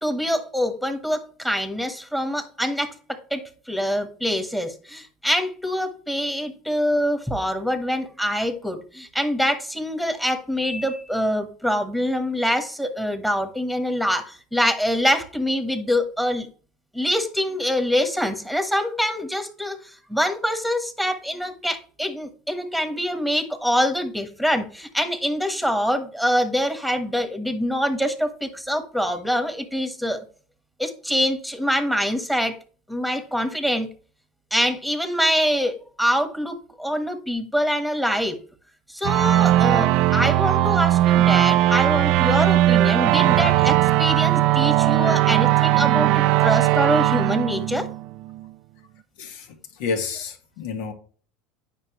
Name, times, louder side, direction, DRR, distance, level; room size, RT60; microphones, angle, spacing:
voice 1, 0.0-16.5 16.9-30.2 30.8-32.6 32.9-33.9 34.5-38.4 38.9-47.9, equal, 5° left, 1.4 m, -25 dB
sound 1, 39.0-48.4, right 15 dB, 60° right, 0.4 m, -18 dB
voice 2, 49.2-50.9, left 4 dB, 75° left, 2.0 m, -30 dB
9.7 x 5.4 x 3.2 m
supercardioid pair, 110°, 0 cm